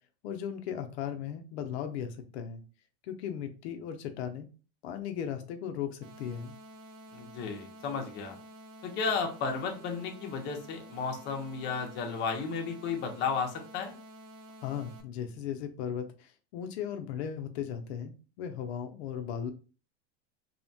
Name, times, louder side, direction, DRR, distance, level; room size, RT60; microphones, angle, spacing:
voice 1, 0.2-2.6 3.1-4.5 4.8-6.6 14.6-19.5, left 8 dB, 80° left, 6 dB, 0.6 m, -37 dB
sound 1, 6.0-15.0, equal, 60° right, 0.6 m, -50 dB
voice 2, 7.1-8.4 8.8-13.9, left 5 dB, 35° left, 3 dB, 0.6 m, -33 dB
2.7 x 2.1 x 2.6 m, 0.35 s
supercardioid pair, 135°, 32 cm